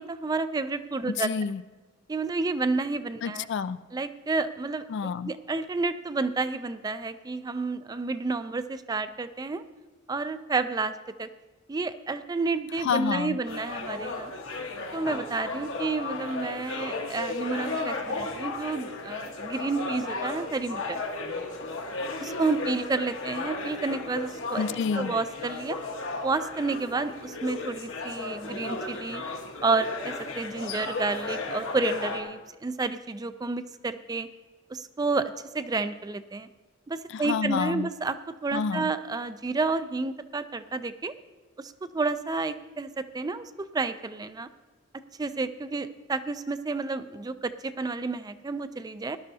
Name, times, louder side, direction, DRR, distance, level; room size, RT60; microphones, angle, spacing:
voice 1, 0.0-1.3 2.1-3.5 3.9-9.6 10.1-11.3 11.7-14.3 14.9-21.0 22.2-24.6 24.9-25.8 26.2-29.2 29.6-34.3 34.7-36.5 36.9-38.2 38.4-41.1 41.6-44.5 45.2-49.2, right 3 dB, 20° right, 12 dB, 0.4 m, -30 dB
voice 2, 1.1-1.6 3.2-3.8 4.9-5.3 12.8-13.4 24.6-25.1 37.1-37.9 38.5-38.9, left 6 dB, 60° left, 15 dB, 0.3 m, -29 dB
sound 1, 13.5-32.2, left 3 dB, 80° left, 1.3 m, -35 dB
18.0 x 11.5 x 2.7 m, 1.2 s
head